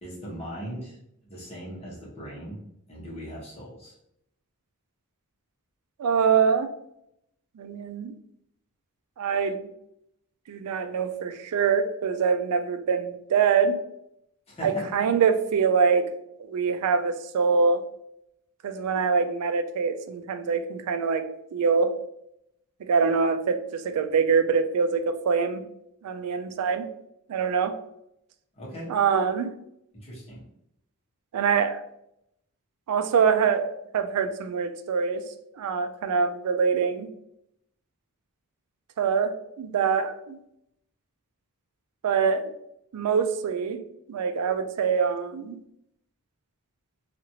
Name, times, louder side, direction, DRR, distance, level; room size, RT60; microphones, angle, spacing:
voice 1, 0.0-1.0 1.2-2.6 2.9-3.9 14.5-14.9 28.5-28.9 29.9-30.4, equal, 30° left, -4 dB, 1.0 m, -39 dB
voice 2, 6.0-6.7 7.6-8.1 9.2-9.7 10.5-13.8 14.6-16.0 16.4-17.8 18.6-22.0 22.8-25.6 26.0-26.9 27.3-27.7 28.9-29.5 31.3-31.8 32.9-35.2 35.6-37.1 39.0-40.4 42.0-42.5 42.9-43.8 44.1-45.6, right 6 dB, 80° right, 9 dB, 0.4 m, -24 dB
2.9 x 2.5 x 2.7 m, 0.78 s
head